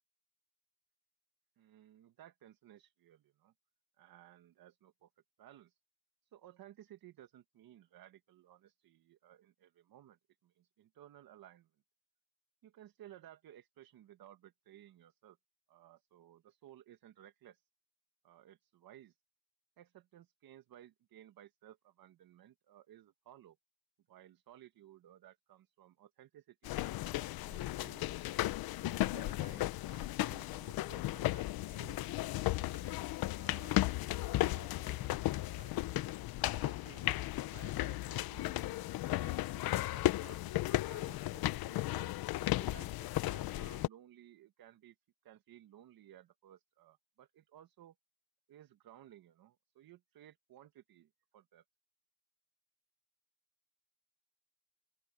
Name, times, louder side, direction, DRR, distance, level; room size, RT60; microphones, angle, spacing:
voice 1, 1.6-3.5 4.0-5.1 5.4-5.8 6.2-11.7 12.6-15.4 15.7-17.6 18.2-19.2 19.8-23.6 24.1-28.2 28.8-35.7 36.4-42.1 42.6-45.0 45.2-48.0 48.5-51.6, right 12 dB, 70° right, 1.8 m, -58 dB
sound 1, 26.6-43.9, left 16 dB, 75° left, 0.9 m, -35 dB
open air
supercardioid pair, 70°, 37 cm